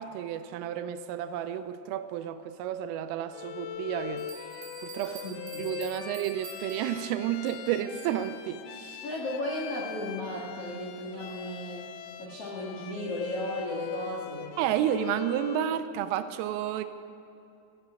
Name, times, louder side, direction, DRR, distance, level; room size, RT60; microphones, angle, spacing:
voice 1, 0.0-4.2 4.8-5.2 5.6-9.0 14.6-16.8, right 10 dB, 85° right, 10 dB, 3.2 m, -31 dB
Bowed string instrument, 3.3-15.8, left 11 dB, 85° left, 2.7 m, -42 dB
sound 1, 3.7-3.8 4.2-7.9, right 7 dB, 65° right, 4.1 m, -47 dB
voice 2, 5.0-5.7 9.0-11.9 12.2-14.5, left 1 dB, 60° left, -4 dB, 1.6 m, -35 dB
16.0 x 11.0 x 7.7 m, 2.6 s
omnidirectional pair, 5.9 m